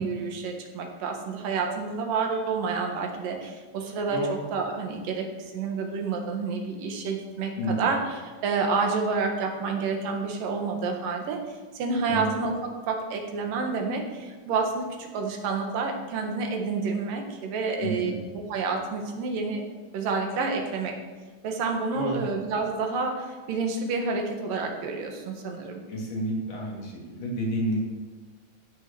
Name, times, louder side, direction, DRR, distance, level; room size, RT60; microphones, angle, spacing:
voice 1, 0.0-19.7 19.9-21.0 21.4-25.8, right 4 dB, 75° right, 3 dB, 3.2 m, -29 dB
voice 2, 4.1-4.4 7.6-7.9 12.1-12.3 17.8-18.2 21.9-22.2 25.9-27.8, equal, 65° left, -2 dB, 4.1 m, -30 dB
15.0 x 6.5 x 6.8 m, 1.3 s
omnidirectional pair, 3.9 m